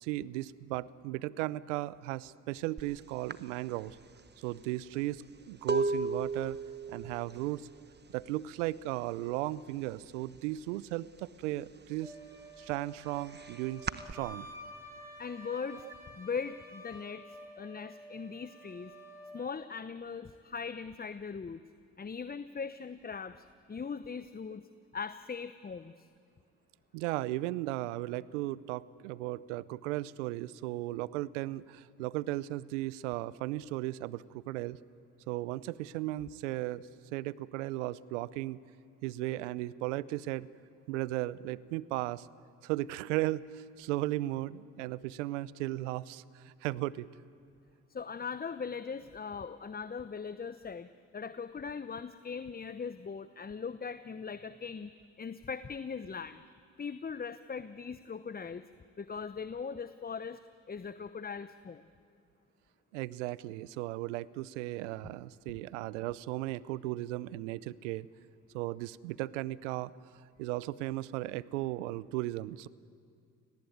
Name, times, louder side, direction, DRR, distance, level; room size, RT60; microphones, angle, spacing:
voice 1, 0.0-4.0 4.4-6.6 6.9-7.7 8.1-12.1 12.6-14.5 15.8-15.9 26.9-34.8 35.3-38.6 39.0-40.5 40.9-42.3 42.6-47.1 62.9-68.1 68.5-69.9 70.4-72.7, right 17 dB, 90° right, 20 dB, 0.6 m, -36 dB
sound 1, 2.8-2.9 3.3-9.0 9.2-9.7 10.0-11.2 11.6-14.1, right 3 dB, 30° right, 1.2 m, -36 dB
Wind instrument woodwind instrument, 12.0-19.4, equal, 5° right, 6.5 m, -50 dB
voice 2, 15.2-15.9 16.1-17.2 17.6-18.9 19.3-21.6 22.0-24.7 24.9-26.1 47.9-54.9 55.2-56.4 56.8-58.6 59.0-60.4 60.7-61.8, left 5 dB, 25° left, 12 dB, 0.9 m, -40 dB
29.0 x 19.0 x 9.3 m, 2.3 s
hypercardioid pair, 55°, 36 cm